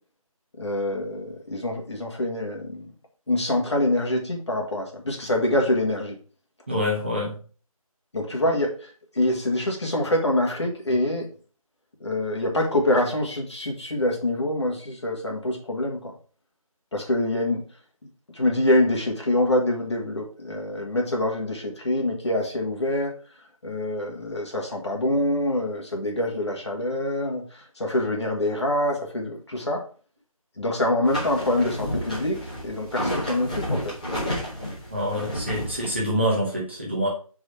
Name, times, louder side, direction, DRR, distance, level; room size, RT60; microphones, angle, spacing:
voice 1, 0.6-2.9 3.3-6.2 8.1-11.3 12.0-16.1 16.9-17.6 18.3-23.1 23.6-29.9 30.6-33.9, left 1 dB, 50° left, 0 dB, 1.7 m, -25 dB
voice 2, 6.7-7.4 34.9-37.1, equal, 20° right, -4 dB, 1.1 m, -26 dB
sound 1, 31.0-36.0, equal, 10° left, 1.3 m, -31 dB
4.8 x 4.3 x 4.8 m, 0.39 s
figure-of-eight pair, 180°, 19 cm